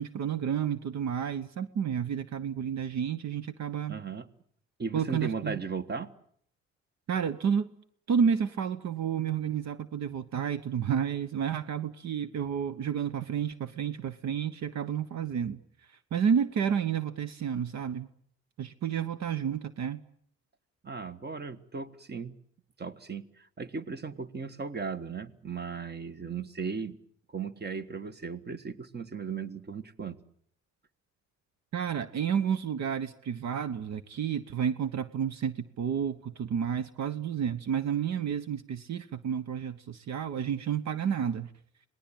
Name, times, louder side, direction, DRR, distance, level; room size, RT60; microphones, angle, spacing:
voice 1, 0.0-4.0 4.9-5.6 7.1-7.7 8.1-15.6 16.1-18.1 18.6-20.0 31.7-41.5, right 8 dB, 65° right, 13 dB, 1.1 m, -30 dB
voice 2, 3.9-4.3 4.8-6.1 20.8-22.3 22.8-26.9 27.3-30.2, right 5 dB, 35° right, 12 dB, 1.6 m, -36 dB
26.5 x 19.5 x 8.9 m, 0.65 s
cardioid pair, 90°, 30 cm